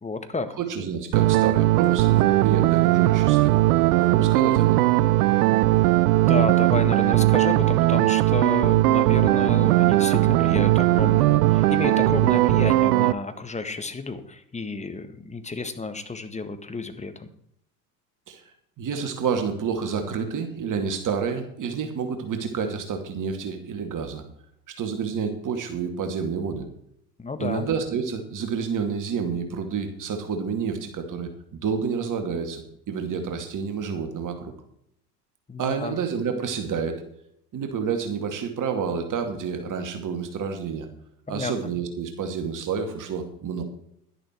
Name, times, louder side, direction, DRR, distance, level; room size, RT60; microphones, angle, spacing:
voice 1, 0.0-0.6 6.1-17.3 27.2-27.7 35.5-36.0 41.3-41.5, left 3 dB, 15° left, 9 dB, 1.7 m, -31 dB
voice 2, 0.6-3.6 4.0-4.8 18.3-18.4 18.8-24.2 24.8-26.7 27.4-34.5 35.6-37.0 37.5-40.9 41.3-43.6, right 6 dB, 40° right, 6 dB, 2.5 m, -29 dB
sound 1, 1.1-13.1, right 17 dB, 70° right, 0.7 m, -19 dB
11.5 x 10.5 x 4.6 m, 0.71 s
hypercardioid pair, 80°, 48 cm